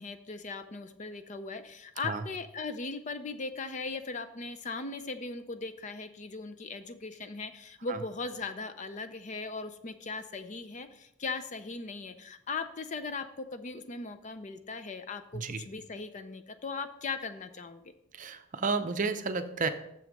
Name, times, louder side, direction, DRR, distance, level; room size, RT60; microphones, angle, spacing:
voice 1, 0.0-17.8, left 4 dB, 35° left, 10 dB, 0.5 m, -38 dB
voice 2, 18.2-19.7, right 4 dB, 40° right, 9 dB, 0.6 m, -31 dB
7.0 x 6.2 x 5.2 m, 0.79 s
head